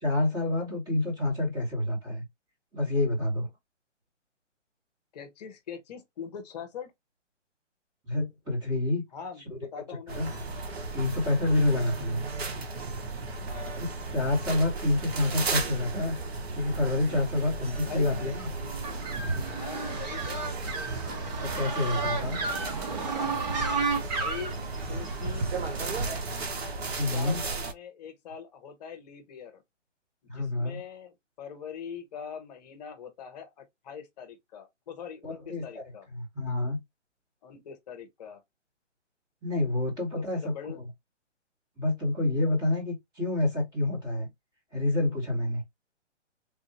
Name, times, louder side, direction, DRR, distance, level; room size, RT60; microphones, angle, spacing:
voice 1, 0.0-2.2 2.7-3.5 8.1-9.0 9.5-9.6 10.1-10.3 10.9-12.2 13.7-16.1 16.5-18.5 21.4-22.4 27.0-27.4 30.3-30.8 35.2-35.8 36.1-36.8 39.4-40.5 41.8-44.3 44.7-45.6, left 2 dB, 10° right, 1.4 m, -28 dB
voice 2, 5.1-6.9 9.1-10.2 13.5-13.8 17.8-18.3 19.5-20.5 22.8-23.4 24.1-24.6 24.9-25.5 27.1-29.6 30.3-36.1 37.4-38.4 40.1-40.9, left 7 dB, 35° left, 1.0 m, -42 dB
sound 1, 10.1-27.7, right 3 dB, 55° right, 1.1 m, -35 dB
sound 2, 18.8-26.2, right 3 dB, 35° right, 1.1 m, -32 dB
3.5 x 2.6 x 2.9 m
figure-of-eight pair, 140°, 36 cm